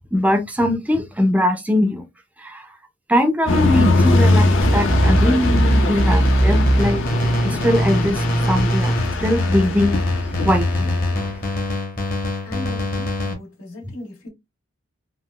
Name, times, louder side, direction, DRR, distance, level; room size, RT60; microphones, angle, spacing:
voice 1, 0.1-2.1 2.4-2.7 3.1-7.0 7.4-11.0, left 1 dB, 5° right, 0.4 m, -21 dB
sound 1, 3.5-11.5, left 2 dB, 60° left, 0.5 m, -21 dB
sound 2, 4.6-13.3, equal, 40° left, 1.0 m, -21 dB
voice 2, 12.4-14.3, left 1 dB, 85° left, 1.9 m, -37 dB
3.6 x 2.3 x 2.3 m
head